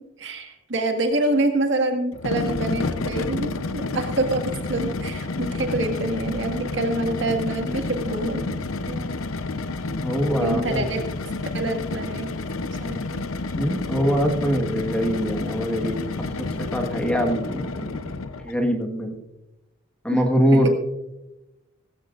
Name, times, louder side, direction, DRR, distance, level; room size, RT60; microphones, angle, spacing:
voice 1, 0.2-4.4 4.7-9.1 10.4-11.0 11.5-12.3 12.8-13.3 20.1-20.2, right 2 dB, 60° right, 4 dB, 1.9 m, -26 dB
sound 1, 2.1-18.6, left 3 dB, 90° left, 0.7 m, -30 dB
voice 2, 10.0-10.8 13.5-17.7 18.4-19.2 20.0-20.7, equal, 5° left, 1 dB, 1.6 m, -23 dB
17.0 x 16.0 x 2.5 m, 0.95 s
head